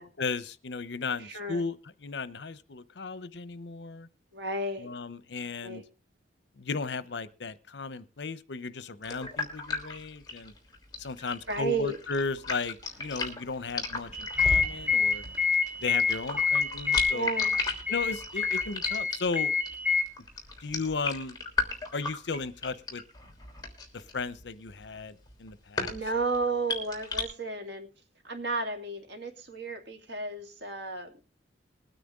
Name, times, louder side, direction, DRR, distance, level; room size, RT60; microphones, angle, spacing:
voice 1, 0.2-1.8 2.0-4.1 4.8-5.8 6.6-10.5 11.0-15.2 15.8-17.3 17.9-19.5 20.6-21.4 21.9-23.0 23.9-26.0, left 4 dB, 70° left, 16 dB, 0.8 m, -35 dB
voice 2, 1.2-1.6 4.3-4.9 5.6-5.8 11.5-12.0 17.1-17.5 25.9-27.9 28.2-31.2, right 3 dB, 75° right, 5 dB, 2.5 m, -33 dB
sound 1, 9.0-27.2, left 4 dB, 20° left, 3.1 m, -36 dB
sound 2, 14.1-20.0, left 5 dB, 10° right, 1.8 m, -27 dB
21.5 x 9.2 x 3.7 m, 0.31 s
head